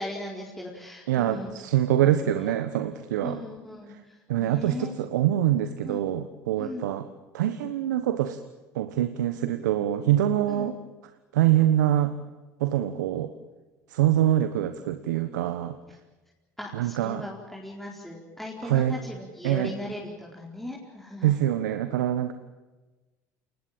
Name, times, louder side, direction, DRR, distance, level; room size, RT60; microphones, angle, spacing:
voice 1, 0.0-1.5 2.0-2.5 3.2-5.2 5.8-6.0 6.6-6.9 10.5-10.7 16.6-21.5, left 1 dB, 5° left, -3 dB, 4.7 m, -38 dB
voice 2, 1.1-3.4 4.3-7.1 7.3-8.4 8.7-10.8 11.3-12.2 12.6-13.3 13.9-15.8 16.7-17.2 18.6-19.0 19.4-19.7 21.2-22.3, right 12 dB, 80° right, 10 dB, 1.2 m, -24 dB
28.5 x 19.5 x 8.8 m, 1.2 s
hypercardioid pair, 70°, 9 cm